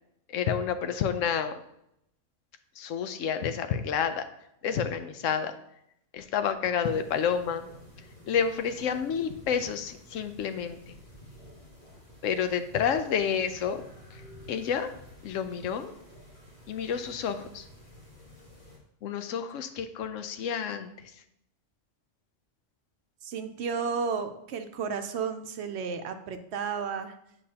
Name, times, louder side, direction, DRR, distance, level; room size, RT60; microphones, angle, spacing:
voice 1, 0.3-1.6 2.8-4.2 4.6-5.5 6.1-7.7 8.3-11.0 12.2-13.8 14.1-14.2 14.5-14.9 15.2-15.9 16.7-17.7 19.0-21.1, left 7 dB, 90° left, 9 dB, 1.0 m, -29 dB
sound 1, 6.8-18.8, left 1 dB, 45° left, 2.4 m, -51 dB
voice 2, 23.2-27.1, right 6 dB, 65° right, 8 dB, 0.8 m, -32 dB
8.4 x 5.3 x 2.8 m, 0.78 s
omnidirectional pair, 1.3 m